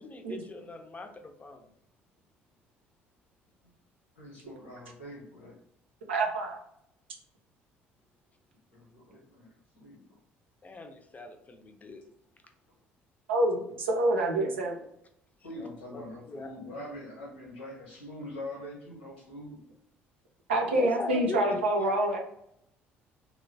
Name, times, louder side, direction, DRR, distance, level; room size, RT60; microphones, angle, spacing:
voice 1, 0.0-1.7 10.6-12.0 15.6-16.0 16.3-16.5 20.7-22.2, left 3 dB, 25° left, 6 dB, 0.5 m, -40 dB
voice 2, 4.2-5.6 8.7-10.0 15.4-19.6, left 1 dB, 85° left, -3 dB, 0.9 m, -43 dB
voice 3, 6.1-6.6 13.3-14.8 20.5-22.2, right 1 dB, 85° right, 0 dB, 0.5 m, -27 dB
3.0 x 2.1 x 2.6 m, 0.75 s
hypercardioid pair, 55°, 6 cm